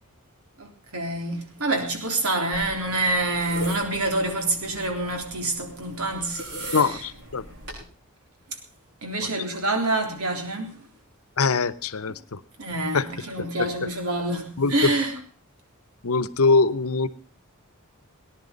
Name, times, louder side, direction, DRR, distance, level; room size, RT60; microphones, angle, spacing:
voice 1, 0.6-7.1 9.0-10.8 12.6-15.2, right 2 dB, 85° right, 3.6 m, -27 dB
sound 1, 2.5-7.8, right 1 dB, 60° right, 7.1 m, -38 dB
voice 2, 6.7-7.4 11.4-12.4 12.9-13.1 14.6-14.7 16.0-17.1, left 4 dB, 80° left, 0.9 m, -22 dB
19.0 x 10.5 x 5.2 m
head